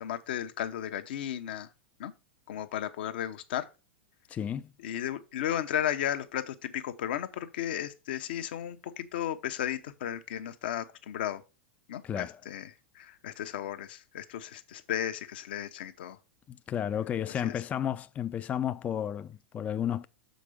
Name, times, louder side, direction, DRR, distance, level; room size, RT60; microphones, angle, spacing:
voice 1, 0.0-1.7 2.0-2.1 2.5-3.7 4.8-11.4 11.9-12.7 12.9-16.2 17.4-17.5, left 11 dB, 65° left, 0.9 m, -34 dB
voice 2, 4.3-4.7 12.0-12.4 16.5-20.1, left 9 dB, 25° left, 0.4 m, -32 dB
6.8 x 5.2 x 4.9 m
hypercardioid pair, 100°, 6 cm